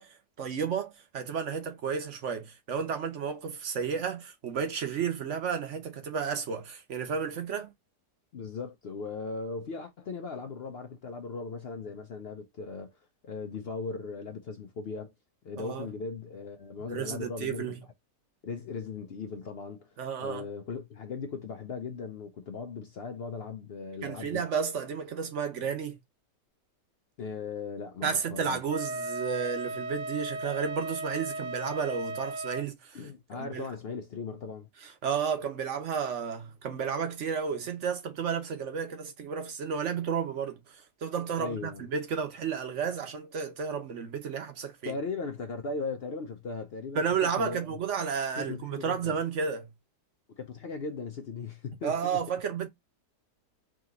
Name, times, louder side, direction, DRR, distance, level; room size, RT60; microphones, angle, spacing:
voice 1, 0.0-7.7 15.6-15.9 16.9-17.8 20.0-20.5 24.0-26.0 28.0-33.0 33.3-33.7 34.8-44.9 46.9-49.7 51.8-52.7, right 6 dB, 50° right, 1.0 m, -32 dB
voice 2, 8.3-12.9 13.2-15.1 15.4-17.7 18.4-19.9 20.2-24.4 27.2-28.6 32.9-34.7 41.4-41.8 44.8-47.0 47.4-47.8 48.4-49.2 50.4-52.2, left 4 dB, 70° left, 0.5 m, -38 dB
Wind instrument woodwind instrument, 28.7-32.7, right 1 dB, 85° right, 1.4 m, -36 dB
3.8 x 2.9 x 3.6 m
omnidirectional pair, 1.8 m